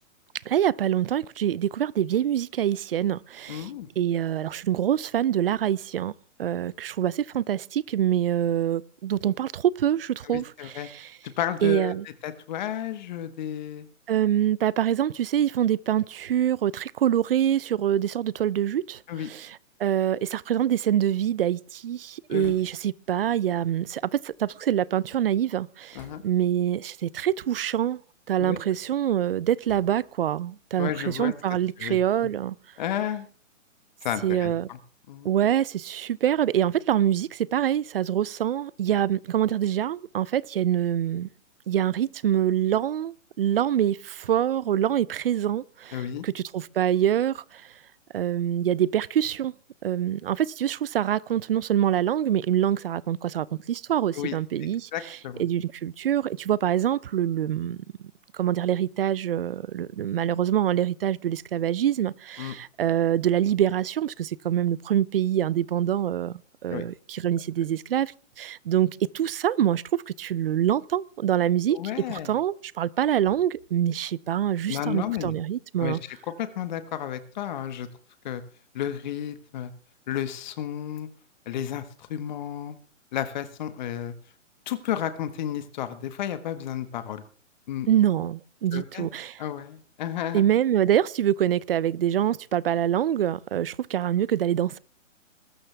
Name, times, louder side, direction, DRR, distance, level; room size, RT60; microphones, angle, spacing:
voice 1, 0.5-3.7 4.0-6.1 6.4-11.1 11.6-12.0 14.1-19.0 19.3-28.0 28.3-32.6 34.2-34.7 35.2-41.3 41.7-47.7 48.1-49.5 49.8-54.9 55.4-57.8 58.3-71.8 72.1-76.0 87.9-89.4 90.3-94.8, right 10 dB, 50° right, 0.6 m, -25 dB
voice 2, 3.5-3.9 10.2-10.9 11.4-13.9 19.1-19.3 22.3-22.5 25.9-26.2 28.4-28.6 30.8-32.3 32.8-33.3 34.0-34.8 35.1-35.3 45.9-46.2 54.1-55.4 62.4-62.5 66.7-66.8 71.7-72.3 74.7-75.3 75.8-77.9 78.2-78.4 78.7-79.7 80.1-81.1 81.4-82.8 83.1-84.1 84.7-87.2 87.7-87.9 88.7-89.1 89.4-90.4, left 10 dB, 35° left, 1.5 m, -32 dB
sound 1, 22.4-23.1 24.0-25.1 25.9-26.6 27.4-27.6 28.1-28.8 29.6-30.4 31.1-33.0, left 2 dB, 5° left, 2.7 m, -56 dB
21.0 x 13.0 x 3.4 m
hypercardioid pair, 155°, 38 cm